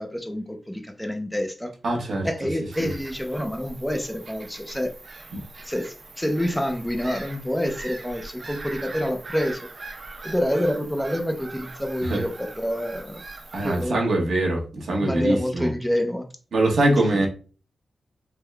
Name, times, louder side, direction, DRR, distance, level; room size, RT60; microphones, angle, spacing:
voice 1, 0.0-4.9 5.6-9.7 10.2-13.2 13.6-14.1 15.0-16.3 17.1-17.3, equal, 5° left, 5 dB, 0.5 m, -28 dB
voice 2, 1.8-2.3 5.3-5.4 12.1-12.2 13.5-15.7 16.5-17.3, right 1 dB, 75° right, 0 dB, 1.0 m, -23 dB
Bird vocalization bird call bird song / Gull seagull, 2.7-13.8, right 2 dB, 55° right, 0.7 m, -41 dB
3.5 x 2.1 x 3.4 m, 0.37 s
wide cardioid pair, 90°, 0 cm